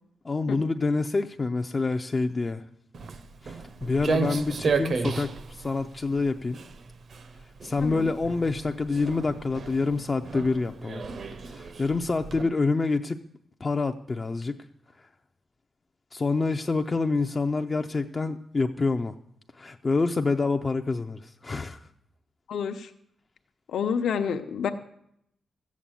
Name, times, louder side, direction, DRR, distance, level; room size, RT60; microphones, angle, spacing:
voice 1, 0.2-2.6 3.4-6.6 7.6-11.0 11.5-13.2 13.6-14.6 15.0-15.1 16.1-19.1 19.5-21.8, left 3 dB, 25° left, 0.4 m, -27 dB
Walk footsteps, 2.9-12.4, right 5 dB, 40° right, 0.7 m, -33 dB
voice 2, 7.8-8.1 12.4-12.5 22.5-22.9 23.7-24.7, left 7 dB, 70° left, 0.8 m, -29 dB
14.5 x 8.4 x 7.4 m
wide cardioid pair, 180°, 0 cm